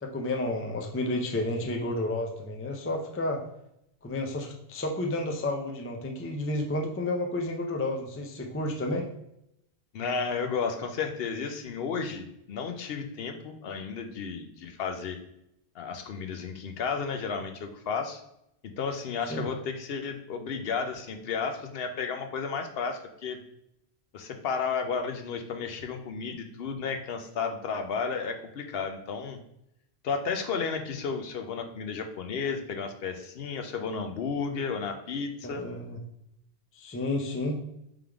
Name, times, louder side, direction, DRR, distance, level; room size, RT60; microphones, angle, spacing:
voice 1, 0.0-3.4 4.0-9.1 19.3-19.5 35.4-36.0 36.7-37.6, left 1 dB, 20° left, 2 dB, 0.3 m, -31 dB
voice 2, 9.9-15.2 15.8-18.2 18.6-23.4 24.1-29.4 30.0-35.6, left 5 dB, 65° left, 6 dB, 0.7 m, -33 dB
3.6 x 3.4 x 3.4 m, 0.78 s
omnidirectional pair, 1.1 m